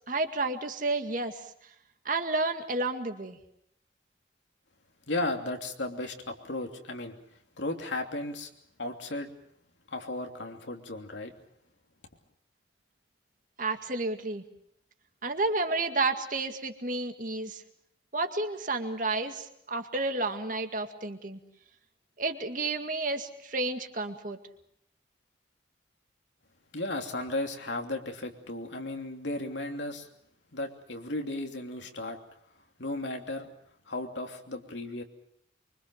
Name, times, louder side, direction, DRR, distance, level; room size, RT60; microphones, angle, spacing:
voice 1, 0.0-1.5 2.1-3.4 13.6-14.4 15.2-17.6 18.1-21.4 22.2-24.4, right 3 dB, 45° right, 6 dB, 2.1 m, -31 dB
voice 2, 5.1-7.1 7.6-8.5 8.8-9.3 9.9-11.3 26.7-30.1 30.5-32.2 32.8-33.5 33.9-35.0, left 2 dB, 80° left, 3 dB, 3.0 m, -35 dB
25.0 x 24.5 x 6.5 m, 0.71 s
head